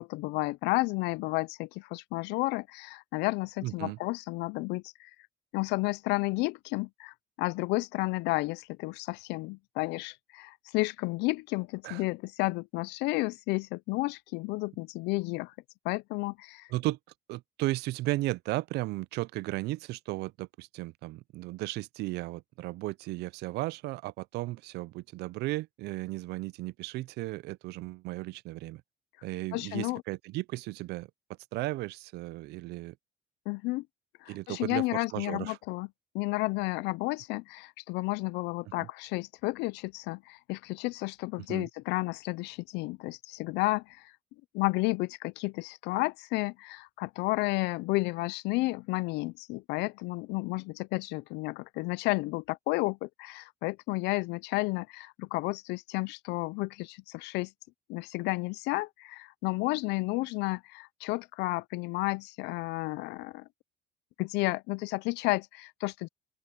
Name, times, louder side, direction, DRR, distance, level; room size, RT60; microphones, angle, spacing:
voice 1, 0.0-5.1 5.5-15.5 15.8-16.7 29.5-30.0 33.5-33.9 34.2-35.9 36.1-44.1 44.5-57.5 57.9-63.4 64.2-66.1, left 23 dB, 90° left, 0.4 m, -32 dB
voice 2, 3.6-4.0 11.8-12.0 16.7-17.0 17.3-28.8 29.2-31.1 31.5-32.9 34.3-35.6 38.8-38.9 41.5-41.7, right 19 dB, 80° right, 0.4 m, -35 dB
open air
cardioid pair, 110°, 17 cm